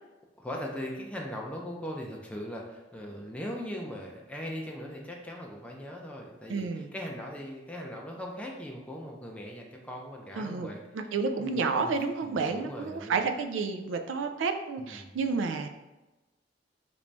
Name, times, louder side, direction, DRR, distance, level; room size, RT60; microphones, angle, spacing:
voice 1, 0.4-11.9 12.2-13.2 14.8-15.2, equal, 5° left, -1 dB, 0.4 m, -40 dB
voice 2, 6.5-6.9 10.4-10.7 10.9-15.7, right 4 dB, 85° right, 7 dB, 0.4 m, -30 dB
3.0 x 2.6 x 3.3 m, 1.1 s
head